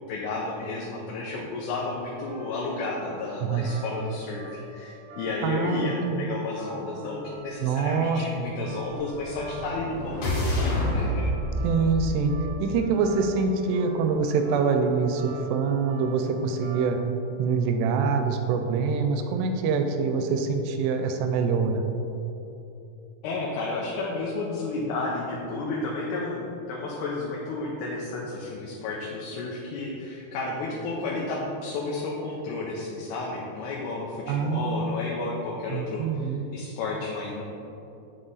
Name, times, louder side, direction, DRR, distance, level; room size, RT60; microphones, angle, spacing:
voice 1, 0.1-11.3 23.2-37.4, left 3 dB, 80° left, -3 dB, 2.7 m, -32 dB
sound 1, 1.8-17.1, right 5 dB, 65° right, 1.8 m, -47 dB
voice 2, 5.4-6.3 7.6-8.5 11.6-12.3 12.6-17.0 17.4-21.8 34.3-35.0 35.7-36.4, right 5 dB, 85° right, 6 dB, 2.6 m, -25 dB
sound 2, 9.1-13.3, left 1 dB, 60° left, 2.0 m, -29 dB
7.8 x 6.3 x 4.0 m, 2.9 s
omnidirectional pair, 4.9 m